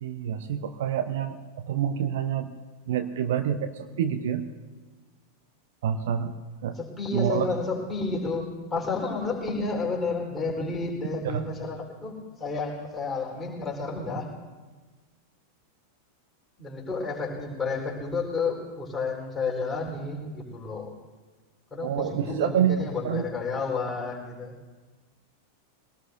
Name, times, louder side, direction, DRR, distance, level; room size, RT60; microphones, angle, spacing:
voice 1, 0.0-1.4 1.6-2.5 2.9-4.4 5.8-6.3 6.6-6.8 7.1-7.5 11.2-11.4 21.8-23.2, right 9 dB, 55° right, 9 dB, 0.7 m, -27 dB
voice 2, 6.8-14.3 16.6-21.0 21.7-24.5, left 4 dB, 10° left, -3 dB, 3.9 m, -31 dB
23.5 x 19.0 x 2.6 m, 1.3 s
figure-of-eight pair, 90°, 0 cm